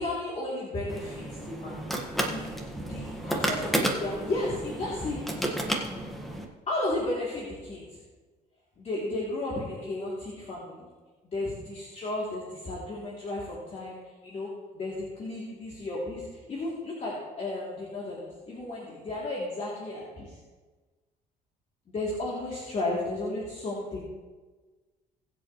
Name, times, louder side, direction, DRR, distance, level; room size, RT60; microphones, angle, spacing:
voice 1, 0.0-1.8 2.2-2.5 2.8-5.2 6.7-7.8 8.8-10.9 11.3-14.0 14.2-20.4 21.9-24.0, left 2 dB, 40° left, -6 dB, 3.0 m, -33 dB
sound 1, 0.9-6.5, right 1 dB, ahead, 1.7 m, -32 dB
21.0 x 7.9 x 3.2 m, 1.3 s
cardioid pair, 110°, 17 cm